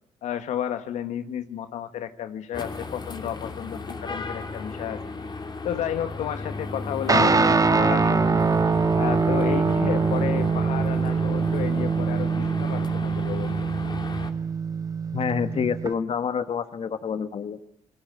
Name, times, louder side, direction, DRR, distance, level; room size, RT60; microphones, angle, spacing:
voice 1, 0.2-5.0 5.6-8.5 8.9-13.7, left 10 dB, 80° left, 10 dB, 1.5 m, -32 dB
sound 1, 2.5-14.3, left 3 dB, 35° left, 2.9 m, -34 dB
voice 2, 7.1-7.5 15.1-17.6, left 6 dB, 55° left, 11 dB, 1.3 m, -28 dB
Guitar, 7.1-15.9, right 5 dB, 30° right, 1.3 m, -23 dB
27.5 x 19.5 x 9.3 m, 0.82 s
cardioid pair, 65°, 12 cm